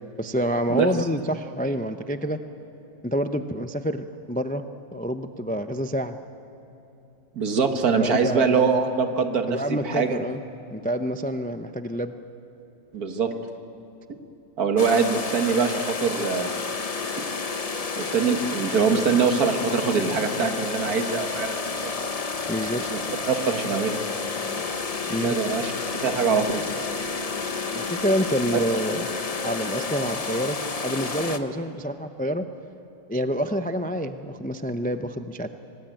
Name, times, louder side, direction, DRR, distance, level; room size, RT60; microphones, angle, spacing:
voice 1, 0.2-2.4 3.0-4.6 4.9-6.2 8.0-8.5 9.5-10.4 10.7-12.1 22.5-23.1 25.1-25.4 27.7-29.1 29.4-32.5 33.1-35.5, equal, 10° left, 8 dB, 0.4 m, -27 dB
voice 2, 7.4-10.2 12.9-13.3 14.1-14.2 14.6-16.5 17.2-17.3 18.0-22.1 22.8-23.0 23.3-24.0 25.2-25.7 26.0-26.6, right 5 dB, 75° right, 6 dB, 2.0 m, -23 dB
sound 1, 14.8-31.4, left 4 dB, 30° left, 0.7 m, -30 dB
25.0 x 19.5 x 9.1 m, 2.9 s
omnidirectional pair, 1.6 m